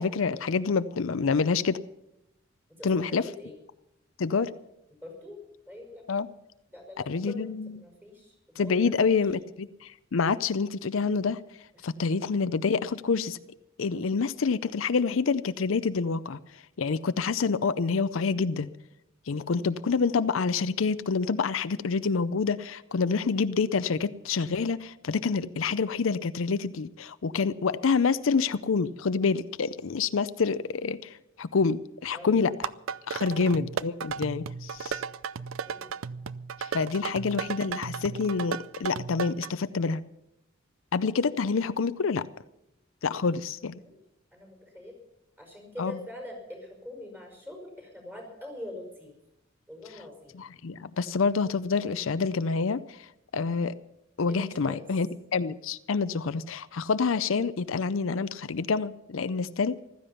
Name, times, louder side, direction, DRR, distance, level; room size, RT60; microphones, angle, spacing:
voice 1, 0.0-1.8 2.8-3.2 4.2-4.5 6.1-6.3 7.1-7.8 8.6-11.4 11.8-13.4 13.8-16.4 16.8-18.7 19.3-32.7 33.1-35.0 36.6-40.0 40.9-42.2 43.0-43.8 45.8-46.0 50.3-53.0 53.3-53.7 54.2-59.8, left 5 dB, 75° left, 14 dB, 0.5 m, -27 dB
voice 2, 2.8-3.6 5.0-5.4 5.7-6.0 6.7-9.1 19.3-19.5 32.1-32.4 33.3-33.5 35.6-36.0 37.0-37.1 43.8-44.0 44.3-44.9 45.4-49.1 49.7-50.5 54.3-54.8, left 1 dB, 10° right, 1 dB, 5.4 m, -44 dB
sound 1, 32.5-39.5, right 6 dB, 85° right, 0.5 m, -35 dB
15.0 x 13.5 x 5.7 m, 0.84 s
head